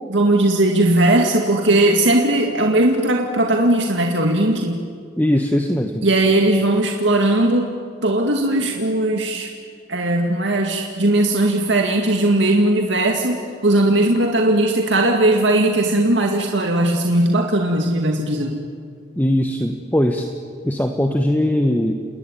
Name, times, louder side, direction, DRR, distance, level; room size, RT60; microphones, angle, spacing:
voice 1, 0.1-4.8 6.0-7.7 8.0-9.5 9.9-18.7, right 1 dB, 75° right, 1 dB, 2.2 m, -18 dB
voice 2, 5.2-6.0 19.2-20.3 20.6-22.0, left 1 dB, 10° left, 4 dB, 1.2 m, -20 dB
30.0 x 20.0 x 9.2 m, 2.1 s
head